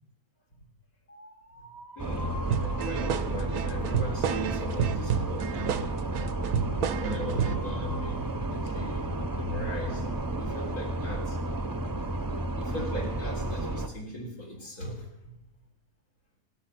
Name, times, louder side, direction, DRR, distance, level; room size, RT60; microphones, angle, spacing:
sound 1, 1.1-10.0, left 1 dB, 30° left, 1.0 m, -49 dB
voice 1, 2.0-6.2 7.0-10.1 10.4-11.4 12.6-15.3, equal, 80° left, -3 dB, 4.3 m, -38 dB
sound 2, 2.0-13.9, right 2 dB, 20° right, 0.5 m, -32 dB
sound 3, 2.5-7.7, right 7 dB, 85° right, 1.2 m, -30 dB
18.5 x 12.0 x 5.8 m, 0.92 s
omnidirectional pair, 1.6 m